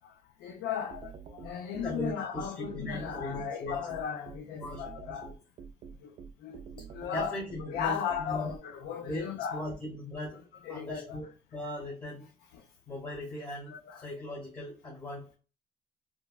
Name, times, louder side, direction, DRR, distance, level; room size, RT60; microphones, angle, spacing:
voice 1, 0.4-1.1 1.4-5.3 6.0-6.1 6.4-6.6 6.9-7.3 7.7-8.6 8.8-9.6 10.7-11.2 13.9-14.0, left 8 dB, 70° left, 0.5 m, -36 dB
sound 1, 0.9-8.6, right 6 dB, 45° right, 0.4 m, -46 dB
voice 2, 1.8-3.9 4.5-5.3 7.1-8.5 9.0-10.4 10.7-12.3 12.9-15.3, left 1 dB, 25° left, 1.2 m, -39 dB
3.2 x 2.2 x 2.3 m
cardioid pair, 110°, 17 cm